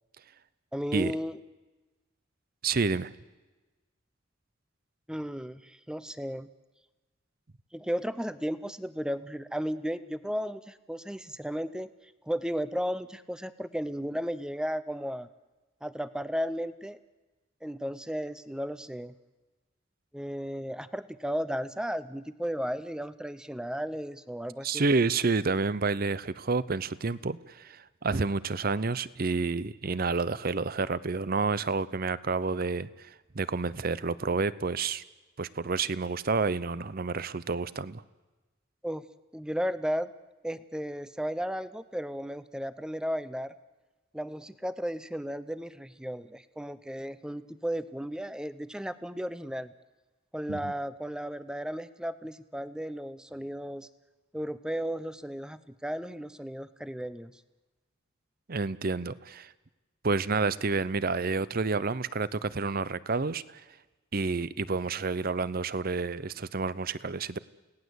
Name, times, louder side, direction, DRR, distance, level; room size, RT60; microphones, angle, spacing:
voice 1, 0.7-1.4 5.1-6.5 7.7-15.3 15.8-17.0 17.6-19.1 20.1-24.8 38.8-39.1 39.3-40.1 40.4-43.6 44.1-49.7 50.3-53.9 54.3-57.4, equal, 5° right, 14 dB, 0.7 m, -34 dB
voice 2, 2.6-3.1 24.6-35.0 35.4-38.0 50.5-50.7 58.5-59.5 60.0-63.6 64.1-67.4, right 4 dB, 45° right, 18 dB, 0.7 m, -29 dB
29.0 x 18.0 x 8.1 m, 1.2 s
head